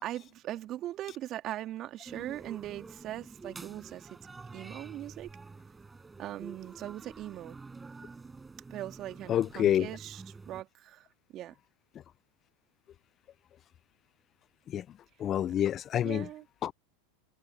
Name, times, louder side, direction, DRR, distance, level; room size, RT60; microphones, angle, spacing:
voice 1, 0.0-4.2 4.5-5.3 6.2-7.6 8.7-11.1 11.3-11.5 16.0-16.4, right 13 dB, 40° right, 2.7 m, -40 dB
sound 1, 2.0-10.6, right 4 dB, 15° right, 5.7 m, -48 dB
voice 2, 9.3-9.9 14.7-14.8 15.2-16.3 16.6-16.7, left 10 dB, 35° left, 0.3 m, -27 dB
hypercardioid pair, 90°, 0 cm